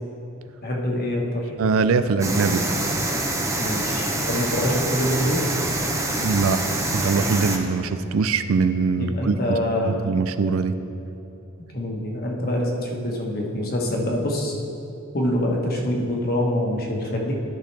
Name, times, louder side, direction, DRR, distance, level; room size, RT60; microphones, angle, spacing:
voice 1, 0.6-1.4 3.6-5.4 9.0-10.0 11.7-14.5 15.1-17.4, left 1 dB, 45° left, -1 dB, 1.4 m, -25 dB
voice 2, 1.6-3.0 6.2-6.6 6.9-9.4 9.8-10.7, right 4 dB, 75° right, 11 dB, 0.4 m, -22 dB
sound 1, 2.2-7.6, right 2 dB, 15° right, 0.8 m, -25 dB
13.0 x 5.9 x 3.4 m, 2.9 s
head